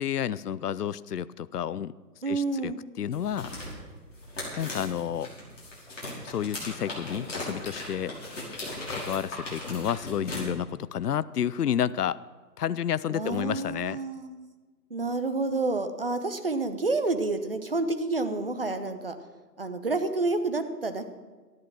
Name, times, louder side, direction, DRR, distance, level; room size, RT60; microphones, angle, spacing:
voice 1, 0.0-1.9 2.3-2.7 3.0-3.5 4.6-5.3 6.2-8.1 8.9-12.2 12.6-14.0, left 9 dB, 70° left, 18 dB, 0.5 m, -30 dB
voice 2, 2.2-2.8 13.1-14.5 14.9-19.1 19.6-21.1, right 3 dB, 35° right, 8 dB, 0.8 m, -29 dB
sound 1, 3.1-10.4, left 1 dB, 45° left, 5.4 m, -38 dB
13.5 x 10.5 x 6.1 m, 1.3 s
figure-of-eight pair, 165°, 50 cm